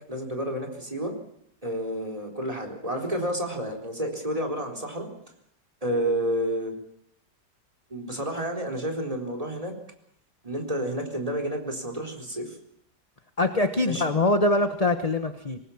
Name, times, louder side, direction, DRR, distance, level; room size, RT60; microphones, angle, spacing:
voice 1, 0.1-1.2 1.6-5.1 5.8-6.7 7.9-9.7 10.4-12.6 13.9-14.0, right 1 dB, 20° right, 4 dB, 4.2 m, -30 dB
voice 2, 13.4-15.6, left 2 dB, 25° left, 8 dB, 1.1 m, -23 dB
26.0 x 19.5 x 7.2 m, 0.70 s
omnidirectional pair, 1.8 m